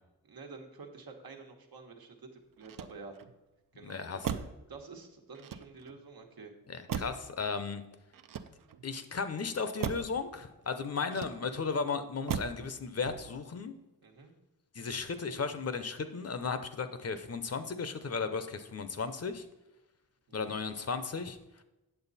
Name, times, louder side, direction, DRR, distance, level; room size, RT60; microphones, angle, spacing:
voice 1, 0.2-3.2 3.7-6.5 11.1-11.2 14.0-14.3 20.3-20.6, right 4 dB, 80° right, 3 dB, 1.4 m, -49 dB
Motor vehicle (road), 2.6-3.4 4.2-4.7 5.3-6.0 6.9-7.4 8.1-8.9 9.8-10.2 11.1-11.7 12.3-12.7 13.0-13.5, right 8 dB, 65° right, 0.6 m, -38 dB
voice 2, 3.8-4.3 6.7-7.8 8.8-13.7 14.7-19.5 20.3-21.4, left 5 dB, 45° left, 10 dB, 0.6 m, -35 dB
9.0 x 7.4 x 4.1 m, 1.0 s
wide cardioid pair, 150°, 36 cm